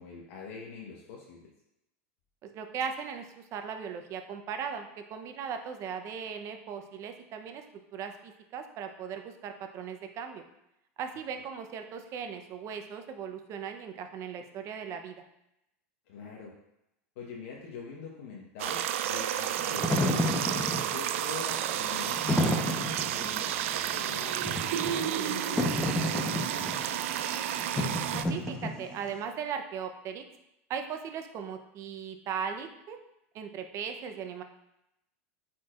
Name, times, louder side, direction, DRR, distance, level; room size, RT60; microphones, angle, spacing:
voice 1, 0.0-1.5 16.1-16.5 17.2-20.6 20.9-24.4 24.8-26.9, left 5 dB, 75° left, -3 dB, 1.2 m, -44 dB
voice 2, 2.4-7.6 7.9-10.4 11.0-15.2 28.1-30.2 30.7-33.0 33.3-34.4, right 7 dB, 45° right, 6 dB, 0.8 m, -38 dB
sound 1, 18.6-28.2, right 11 dB, 75° right, 0.4 m, -31 dB
Wind / Fire, 19.6-29.1, left 1 dB, 10° left, 1.0 m, -31 dB
8.5 x 4.5 x 2.5 m, 0.86 s
supercardioid pair, 110°, 7 cm